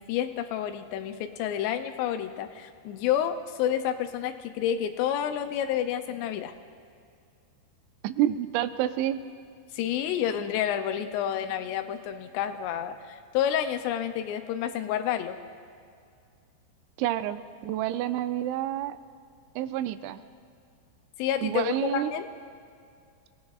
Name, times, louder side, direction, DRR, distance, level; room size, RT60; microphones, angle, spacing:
voice 1, 0.0-6.5 9.7-15.4 21.2-22.3, left 10 dB, 80° left, 8 dB, 2.6 m, -29 dB
voice 2, 8.0-9.2 17.0-19.0 19.6-20.2 21.4-22.1, right 12 dB, 85° right, 11 dB, 2.8 m, -28 dB
26.5 x 17.5 x 2.4 m, 2.3 s
omnidirectional pair, 5.1 m